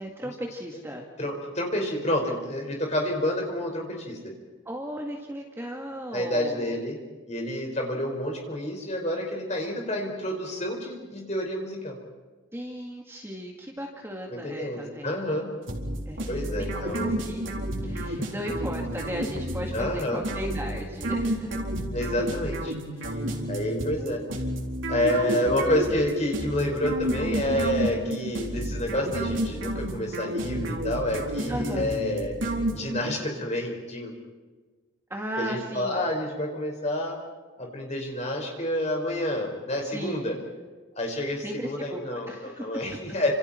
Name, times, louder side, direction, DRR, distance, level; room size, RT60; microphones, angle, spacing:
voice 1, 0.0-1.1 4.7-6.7 12.5-15.5 16.1-17.5 17.8-21.6 24.0-24.3 25.2-25.6 31.5-31.9 35.1-36.0 39.8-40.4 41.4-42.8, equal, 10° right, 0 dB, 2.1 m, -36 dB
voice 2, 1.2-4.3 6.1-7.0 7.3-12.0 14.3-15.5 16.3-17.1 18.1-18.3 19.7-20.2 21.9-22.7 23.5-24.2 24.9-32.4 32.7-34.2 35.4-37.2 37.6-40.4 41.0-43.3, left 1 dB, 35° left, 1 dB, 5.3 m, -29 dB
sound 1, 15.7-33.2, right 1 dB, 75° right, 4.0 m, -31 dB
30.0 x 27.5 x 4.5 m, 1.3 s
head